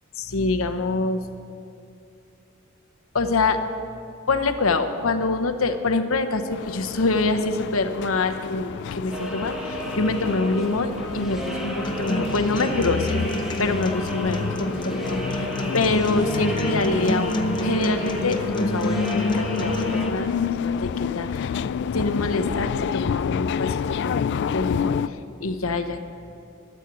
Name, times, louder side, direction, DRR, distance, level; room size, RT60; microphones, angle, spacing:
voice 1, 0.2-1.2 3.1-3.6 4.3-13.2 13.6-14.4 14.8-21.5 21.9-24.2 24.5-26.0, left 3 dB, 85° left, 7 dB, 1.0 m, -25 dB
sound 1, 6.5-25.1, left 6 dB, 60° left, 0.3 m, -29 dB
sound 2, 9.1-20.1, equal, ahead, 1.7 m, -33 dB
Acoustic guitar, 11.8-19.8, equal, 25° left, 0.9 m, -29 dB
13.0 x 8.3 x 9.7 m, 2.6 s
head